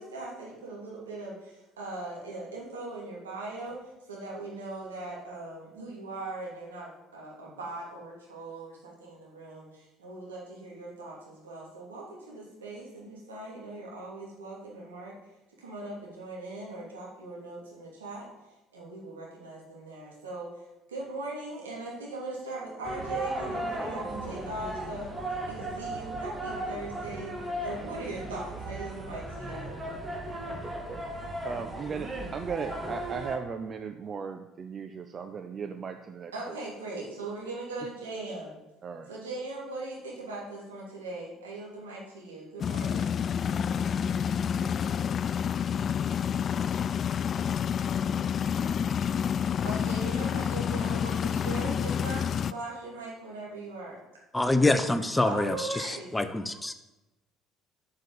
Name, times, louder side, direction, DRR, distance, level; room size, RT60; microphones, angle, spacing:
voice 1, 0.0-15.1 15.6-18.3 18.7-29.7 36.3-38.6 39.1-43.1 49.6-54.0 55.2-56.1, right 2 dB, 85° right, -4 dB, 2.8 m, -40 dB
sound 1, 22.8-33.4, right 1 dB, 20° right, 2.2 m, -36 dB
voice 2, 31.4-36.6 38.8-39.1, right 6 dB, 40° right, 8 dB, 0.6 m, -37 dB
sound 2, 42.6-52.5, left 8 dB, 45° left, 0.3 m, -29 dB
voice 3, 54.3-56.7, left 2 dB, 10° left, 10 dB, 0.8 m, -26 dB
7.4 x 6.8 x 7.1 m, 1.0 s
hypercardioid pair, 55°, 0 cm